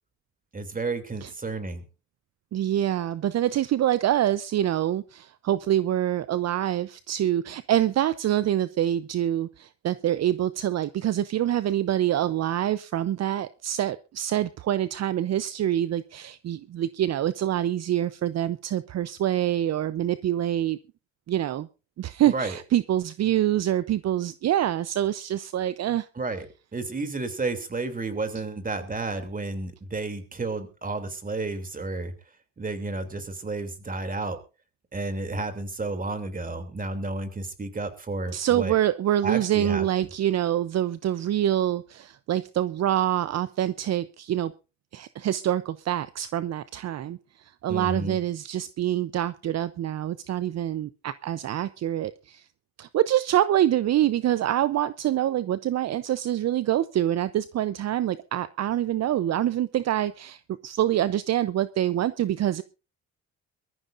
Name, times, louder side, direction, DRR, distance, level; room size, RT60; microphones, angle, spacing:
voice 1, 0.5-1.8 22.3-22.6 26.1-26.5 26.7-32.1 32.6-34.4 34.9-38.8 39.2-39.9 47.7-48.2, right 3 dB, 30° right, 8 dB, 2.9 m, -31 dB
voice 2, 2.5-20.8 21.3-21.7 22.0-26.1 38.3-44.5 44.9-47.2 47.6-52.4 52.8-62.6, right 12 dB, 60° right, 15 dB, 0.7 m, -25 dB
23.0 x 14.0 x 2.6 m, 0.31 s
cardioid pair, 90°, 30 cm